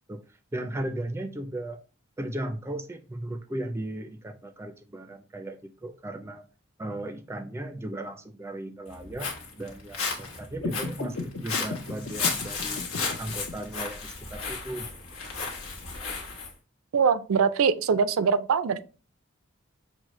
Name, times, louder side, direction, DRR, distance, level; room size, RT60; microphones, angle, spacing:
voice 1, 0.5-1.8 2.2-6.5 6.8-9.3 9.6-12.8 13.2-14.9, right 1 dB, 15° right, 0.3 m, -36 dB
Walk footsteps, 8.9-16.5, left 4 dB, 90° left, 1.1 m, -34 dB
sound 1, 10.5-13.5, left 3 dB, 65° left, 0.7 m, -36 dB
voice 2, 16.9-18.8, right 6 dB, 85° right, 0.4 m, -23 dB
6.2 x 2.1 x 3.0 m
head